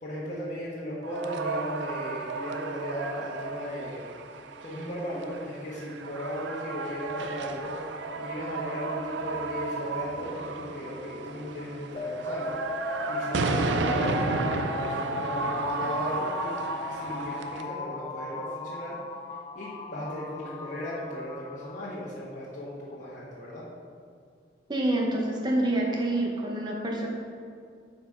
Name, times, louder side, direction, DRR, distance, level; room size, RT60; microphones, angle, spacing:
voice 1, 0.0-4.0 4.6-16.5 16.9-19.0 19.5-23.6, equal, 45° left, -8 dB, 1.3 m, -36 dB
sound 1, 1.0-17.6, right 3 dB, 75° right, 0.5 m, -33 dB
sound 2, 12.0-22.0, left 3 dB, 25° left, 0.3 m, -36 dB
voice 2, 24.7-27.1, right 1 dB, 25° right, -1 dB, 0.8 m, -27 dB
8.0 x 5.2 x 4.9 m, 2.2 s
head